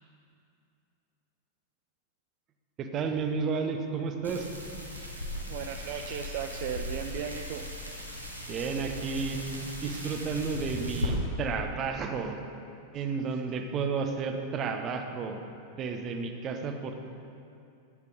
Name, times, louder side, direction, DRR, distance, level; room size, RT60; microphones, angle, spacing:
voice 1, 2.8-4.5 8.5-9.4 9.8-12.4 12.9-15.4 15.8-16.9, right 5 dB, 30° right, 5 dB, 1.0 m, -32 dB
sound 1, 4.2-11.1, left 1 dB, 90° right, 1.5 m, -38 dB
voice 2, 5.5-7.6, right 8 dB, 50° right, 5 dB, 0.5 m, -36 dB
12.5 x 8.7 x 5.0 m, 2.6 s
figure-of-eight pair, 90°, 0 cm